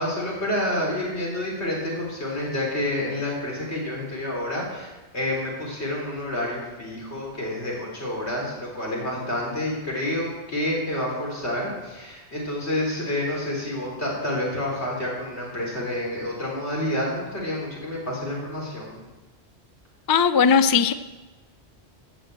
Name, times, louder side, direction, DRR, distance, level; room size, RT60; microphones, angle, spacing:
voice 1, 0.0-19.0, left 1 dB, 80° left, -3 dB, 4.1 m, -29 dB
voice 2, 20.1-20.9, left 6 dB, 35° left, 12 dB, 0.3 m, -18 dB
14.0 x 6.3 x 8.0 m, 1.2 s
omnidirectional pair, 1.1 m